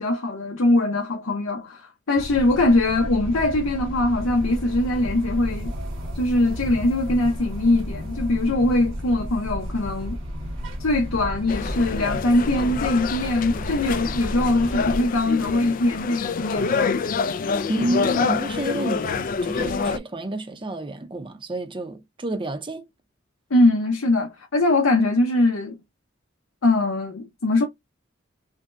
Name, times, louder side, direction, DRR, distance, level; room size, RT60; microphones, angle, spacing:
voice 1, 0.0-5.7 6.1-10.2 10.8-17.2 23.5-25.8 26.6-27.7, left 2 dB, 85° left, 0.8 m, -22 dB
sound 1, 2.1-15.0, equal, 70° right, 1.1 m, -32 dB
sound 2, 11.5-20.0, left 5 dB, 45° left, 0.3 m, -27 dB
voice 2, 17.7-22.8, right 1 dB, 25° right, 0.6 m, -29 dB
4.9 x 2.2 x 2.6 m
head